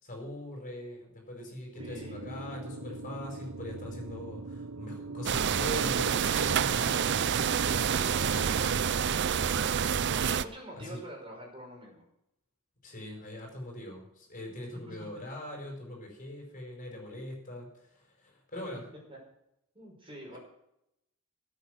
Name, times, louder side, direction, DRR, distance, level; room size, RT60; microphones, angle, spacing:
voice 1, 0.0-7.1 10.7-11.0 12.8-18.8 20.3-20.4, left 1 dB, 40° left, 0 dB, 4.8 m, -41 dB
voice 2, 1.8-2.1 10.3-12.0 14.9-15.0 19.1-19.2 19.7-20.4, equal, 25° right, -1 dB, 5.5 m, -46 dB
sound 1, 1.8-8.8, right 3 dB, 90° right, 0.9 m, -42 dB
sound 2, 5.3-10.5, right 7 dB, 55° right, 0.5 m, -28 dB
16.5 x 8.6 x 6.5 m, 0.81 s
head